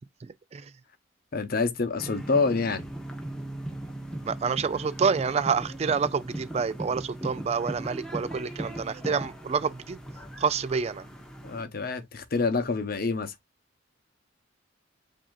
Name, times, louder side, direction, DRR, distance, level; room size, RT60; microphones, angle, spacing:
voice 1, 0.2-0.7 4.2-10.0 10.4-11.1, right 5 dB, 35° right, 0.3 m, -28 dB
voice 2, 1.3-2.8 11.4-13.3, left 4 dB, 50° left, 0.8 m, -27 dB
sound 1, 2.0-11.6, right 1 dB, 5° left, 0.9 m, -38 dB
7.4 x 2.7 x 2.3 m
head